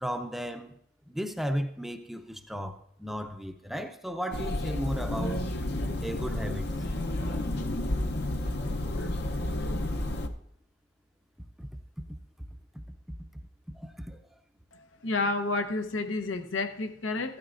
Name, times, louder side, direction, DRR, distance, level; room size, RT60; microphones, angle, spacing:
voice 1, 0.0-0.8 1.1-5.4 6.0-6.7 11.6-11.7 12.7-12.8 13.7-14.2, equal, ahead, 0.5 m, -35 dB
sound 1, 4.3-10.3, left 1 dB, 55° left, 0.7 m, -31 dB
voice 2, 15.0-17.4, left 3 dB, 90° left, 1.0 m, -30 dB
15.5 x 12.5 x 2.6 m
head